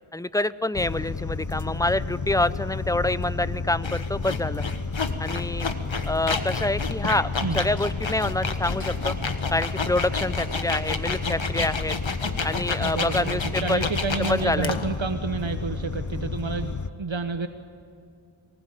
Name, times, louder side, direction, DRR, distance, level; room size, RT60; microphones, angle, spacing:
voice 1, 0.1-4.6 5.2-5.7 6.0-7.3 7.5-9.1 9.5-12.0 12.4-13.9 14.3-14.7, left 2 dB, 5° left, 15 dB, 0.6 m, -26 dB
sound 1, 0.7-16.9, left 4 dB, 35° left, 0.9 m, -31 dB
sound 2, 3.8-15.0, left 4 dB, 65° left, 1.6 m, -31 dB
sound 3, 8.5-13.4, left 1 dB, 85° left, 3.5 m, -53 dB
voice 2, 12.8-17.5, right 4 dB, 65° right, 8 dB, 1.1 m, -30 dB
24.0 x 19.5 x 9.0 m, 2.4 s
wide cardioid pair, 40°, 49 cm